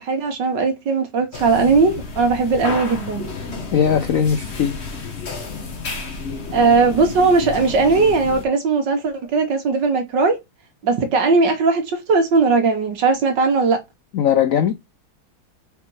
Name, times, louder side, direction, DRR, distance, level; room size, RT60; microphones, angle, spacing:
voice 1, 0.0-3.3 6.5-10.4 10.8-13.8, right 4 dB, 60° right, 2.1 m, -18 dB
sound 1, 1.3-8.4, left 4 dB, 35° left, 1.4 m, -31 dB
voice 2, 3.7-4.8 14.1-14.7, left 8 dB, 90° left, 0.7 m, -19 dB
5.2 x 4.1 x 4.8 m
omnidirectional pair, 2.2 m